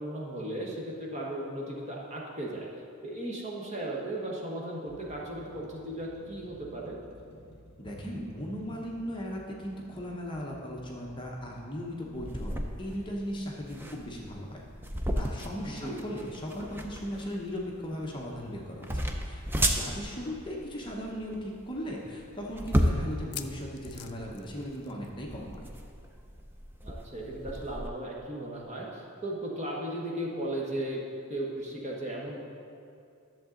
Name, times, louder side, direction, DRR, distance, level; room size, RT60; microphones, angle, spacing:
voice 1, 0.0-2.7 3.0-7.0 15.6-16.0 26.8-31.0 31.3-32.4, right 1 dB, 30° right, -3 dB, 1.2 m, -36 dB
sound 1, 2.6-2.8 3.7-3.9 4.5-15.8 16.6-16.8, equal, 50° left, 1.9 m, -54 dB
voice 2, 7.8-12.5 12.8-14.6 15.2-25.6, equal, 20° left, -2 dB, 0.8 m, -37 dB
sound 2, 12.1-27.9, equal, 10° right, 0.4 m, -34 dB
sound 3, 23.1-25.3 25.5-25.7 26.0-26.1 27.5-27.6, left 12 dB, 85° left, 0.5 m, -45 dB
11.0 x 7.2 x 3.8 m, 2.5 s
head